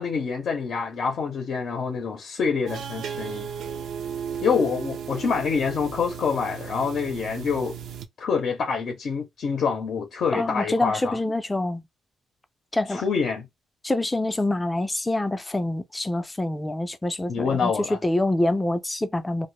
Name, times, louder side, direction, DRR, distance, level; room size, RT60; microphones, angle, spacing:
voice 1, 0.0-3.5 4.4-7.8 8.2-11.2 12.9-13.5 17.3-18.0, left 5 dB, 60° left, 0.6 m, -26 dB
sound 1, 2.7-8.1, right 7 dB, 75° right, 0.4 m, -35 dB
voice 2, 10.3-11.8 12.7-13.0 13.8-19.5, left 1 dB, 15° left, 0.4 m, -26 dB
2.1 x 2.0 x 3.0 m
cardioid pair, 90°, 0 cm